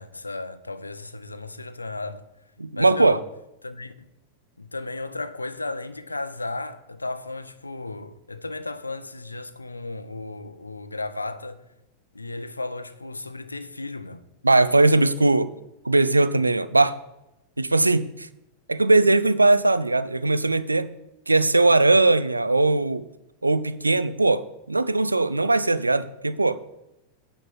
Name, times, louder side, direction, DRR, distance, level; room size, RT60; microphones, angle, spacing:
voice 1, 0.0-2.2 2.7-3.2 3.6-4.1 4.6-11.6 12.1-14.3 23.9-24.0, left 2 dB, 80° left, 0.6 m, -34 dB
voice 2, 2.6-3.2 14.4-15.5 15.8-17.0 17.6-18.3 18.7-20.9 21.3-23.1 23.4-26.6, right 2 dB, 80° right, 0.4 m, -20 dB
8.9 x 4.4 x 7.1 m
figure-of-eight pair, 90°, 0 cm